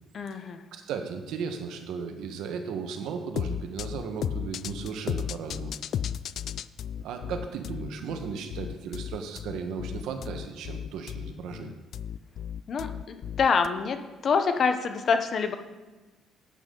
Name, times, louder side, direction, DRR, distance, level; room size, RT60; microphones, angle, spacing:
voice 1, 0.1-0.6 12.7-14.0 14.2-15.5, left 5 dB, 40° left, 7 dB, 0.9 m, -26 dB
voice 2, 0.7-5.7 7.0-11.8, right 6 dB, 80° right, 6 dB, 1.2 m, -35 dB
sound 1, 3.4-13.7, left 9 dB, 55° left, 0.3 m, -34 dB
11.5 x 8.6 x 3.9 m, 1.2 s
cardioid pair, 145°, 0 cm